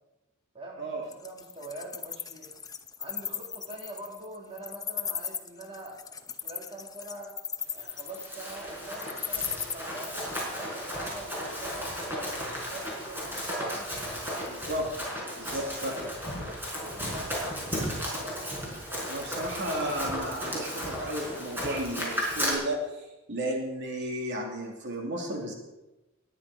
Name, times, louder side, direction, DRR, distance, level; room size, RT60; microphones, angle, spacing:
voice 1, 0.5-2.5 3.0-6.0 6.4-7.4 7.7-13.9 15.4-18.5, right 2 dB, 25° right, -1 dB, 3.0 m, -44 dB
Wild animals, 1.1-9.7, left 7 dB, 20° left, 0.9 m, -36 dB
Run, 8.0-22.5, equal, 10° right, 5.4 m, -34 dB
voice 2, 14.5-14.8 15.4-15.9 19.1-25.5, right 1 dB, 60° right, 0 dB, 2.8 m, -33 dB
21.0 x 10.0 x 5.0 m, 1.0 s
head